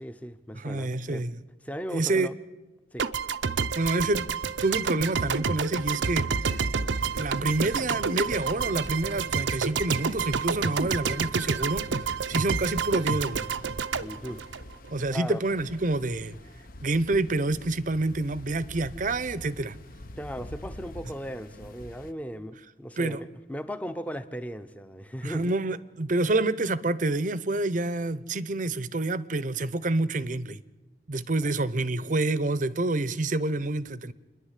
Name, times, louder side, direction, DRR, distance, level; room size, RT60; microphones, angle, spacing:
voice 1, 0.0-1.2 1.6-2.3 2.9-3.1 14.0-14.4 15.1-15.4 20.2-25.5 31.4-31.5, equal, 10° left, 10 dB, 0.8 m, -37 dB
voice 2, 0.5-1.3 1.9-2.3 3.7-4.3 4.6-6.3 7.1-11.9 12.3-13.4 14.9-16.4 16.8-19.8 23.0-23.2 25.2-30.6 31.1-34.1, right 2 dB, 45° right, 16 dB, 0.7 m, -27 dB
sound 1, 3.0-15.2, right 5 dB, 80° right, 0.7 m, -29 dB
sound 2, 6.9-22.1, left 1 dB, 50° left, 0.9 m, -45 dB
30.0 x 11.0 x 8.3 m, 1.1 s
head